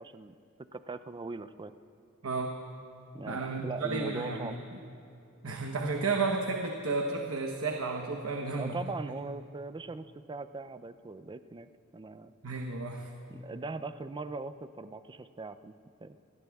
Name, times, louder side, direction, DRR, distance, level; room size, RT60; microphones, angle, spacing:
voice 1, 0.0-1.7 3.1-4.6 8.5-12.3 13.3-15.7 16.0-16.2, right 3 dB, 20° right, 12 dB, 0.4 m, -40 dB
voice 2, 2.2-2.6 3.3-4.8 5.4-8.8 12.4-13.1, right 3 dB, 70° right, 2 dB, 1.0 m, -32 dB
28.0 x 19.5 x 2.3 m, 2.7 s
head